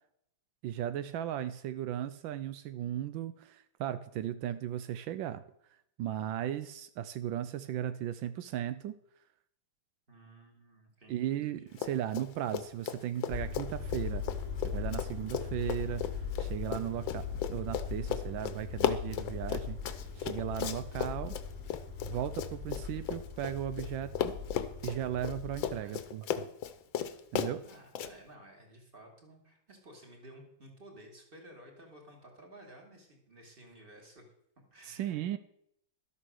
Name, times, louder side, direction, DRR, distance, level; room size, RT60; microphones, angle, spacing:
voice 1, 0.6-5.4 6.0-9.0 11.1-14.2 14.6-16.0 16.4-21.3 22.0-24.3 24.8-26.5 27.3-27.6 34.8-35.4, right 11 dB, 85° right, 13 dB, 1.4 m, -36 dB
voice 2, 10.1-11.7 25.7-26.1 27.6-34.3 34.7-35.2, right 1 dB, 30° right, 1 dB, 2.7 m, -54 dB
Run, 11.7-12.3 12.5-23.9 24.2-28.1, left 10 dB, 85° left, 1.6 m, -35 dB
sound 1, 13.3-25.8, left 6 dB, 55° right, 3.4 m, -40 dB
12.5 x 8.4 x 6.3 m, 0.74 s
omnidirectional pair, 2.1 m